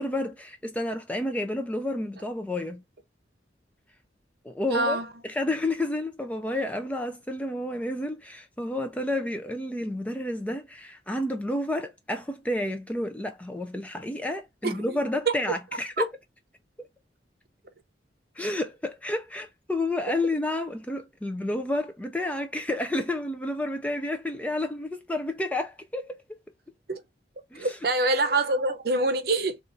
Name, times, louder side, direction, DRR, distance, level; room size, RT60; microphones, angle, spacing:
voice 1, 0.0-2.8 4.4-16.1 18.4-26.2 27.5-27.8, left 1 dB, 10° left, 0.4 m, -30 dB
voice 2, 4.7-5.1 14.6-14.8 16.0-16.1 26.9-27.0 27.5-29.6, right 2 dB, 55° right, 0.7 m, -25 dB
4.0 x 2.4 x 2.6 m
head